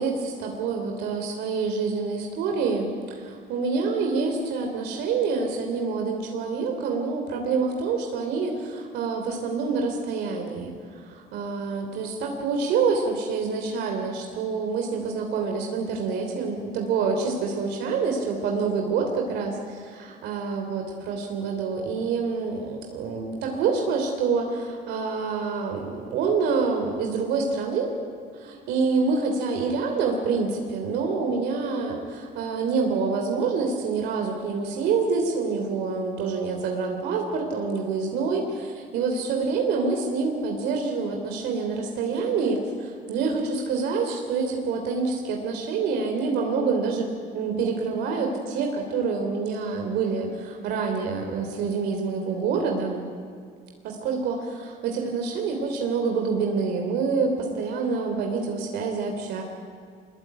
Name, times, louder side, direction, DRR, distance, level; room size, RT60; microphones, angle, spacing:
voice 1, 0.0-10.7 11.0-27.9 28.3-53.0 53.8-59.4, right 4 dB, 85° right, 2 dB, 3.3 m, -27 dB
23.5 x 21.5 x 9.1 m, 2.1 s
cardioid pair, 110°, 17 cm